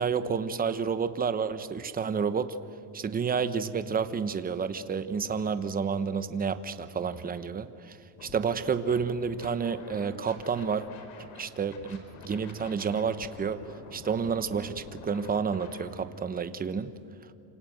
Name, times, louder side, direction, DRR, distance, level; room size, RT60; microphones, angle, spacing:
voice 1, 0.0-2.6 2.9-10.8 11.2-13.6 13.9-16.9, right 6 dB, 20° right, 11 dB, 0.9 m, -30 dB
Scratching (performance technique), 8.2-8.5 8.9-11.4 11.7-15.9, left 4 dB, 80° left, 4.9 m, -47 dB
28.5 x 26.5 x 8.0 m, 2.6 s
cardioid pair, 155°, 49 cm